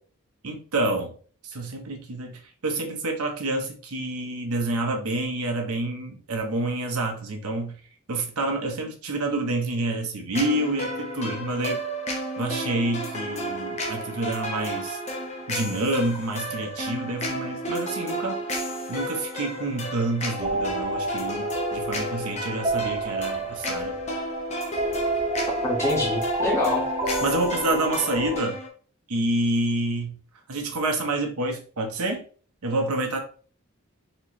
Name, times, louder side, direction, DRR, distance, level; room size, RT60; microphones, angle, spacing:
voice 1, 0.4-1.1 1.4-7.7 8.1-11.8 12.4-15.0 15.5-18.5 18.9-23.9 27.2-28.6 29.1-30.2 30.5-32.2 32.6-33.2, right 2 dB, 90° right, 3 dB, 0.9 m, -28 dB
sound 1, 10.3-28.7, equal, 30° left, 0.8 m, -32 dB
sound 2, 20.2-28.4, right 1 dB, 25° right, 0.5 m, -30 dB
voice 2, 25.6-26.8, left 2 dB, 10° left, -5 dB, 1.5 m, -25 dB
4.3 x 3.0 x 3.1 m, 0.43 s
head